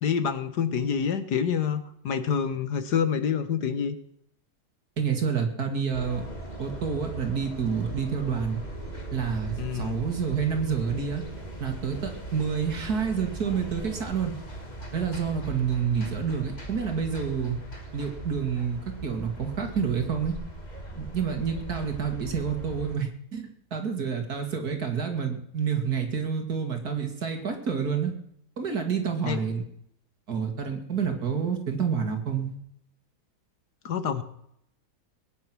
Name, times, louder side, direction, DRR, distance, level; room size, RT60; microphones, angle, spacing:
voice 1, 0.0-4.0 9.6-10.0 29.3-29.4 33.8-34.2, left 7 dB, 80° left, 10 dB, 1.9 m, -27 dB
voice 2, 5.0-6.2 6.6-8.6 9.1-11.2 11.6-14.3 14.9-17.6 17.9-20.3 21.0-28.1 28.6-29.6 30.3-32.6, right 6 dB, 70° right, 5 dB, 3.0 m, -28 dB
sound 1, 5.9-23.0, right 2 dB, 25° left, 2.6 m, -39 dB
21.0 x 10.5 x 6.2 m, 0.73 s
omnidirectional pair, 1.7 m